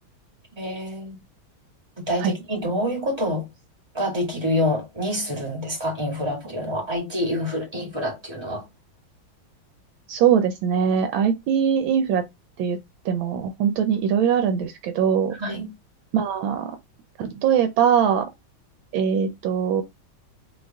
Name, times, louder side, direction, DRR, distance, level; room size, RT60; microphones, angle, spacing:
voice 1, 0.6-1.2 2.0-3.4 3.9-8.6 15.4-15.7, left 1 dB, 15° right, 2.2 m, -27 dB
voice 2, 10.1-12.2 12.6-12.8 13.0-15.3 16.1-16.8 17.2-18.3 18.9-19.8, right 8 dB, 75° right, 1.3 m, -21 dB
3.9 x 3.3 x 3.4 m
omnidirectional pair, 2.3 m